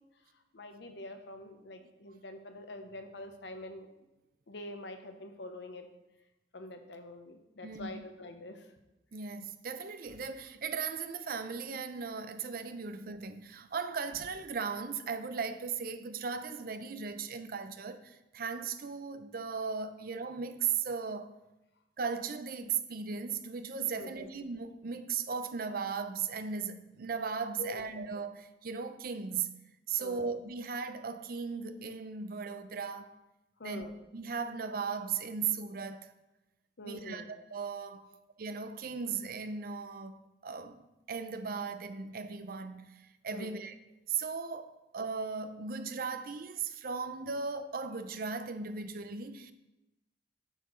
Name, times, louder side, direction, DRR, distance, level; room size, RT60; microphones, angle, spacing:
voice 1, 0.5-3.9 4.5-5.9 6.5-8.7 23.9-24.3 27.6-28.0 30.0-30.3 33.6-34.0 36.8-37.4 38.0-38.2 43.3-43.5, left 1 dB, 75° left, 0.8 m, -45 dB
voice 2, 7.6-8.0 9.1-21.3 22.0-29.6 29.9-33.1 33.6-36.1 36.8-38.1 38.4-40.8 41.1-43.7 44.1-49.5, right 5 dB, 55° right, 0.5 m, -37 dB
9.0 x 6.5 x 3.1 m
head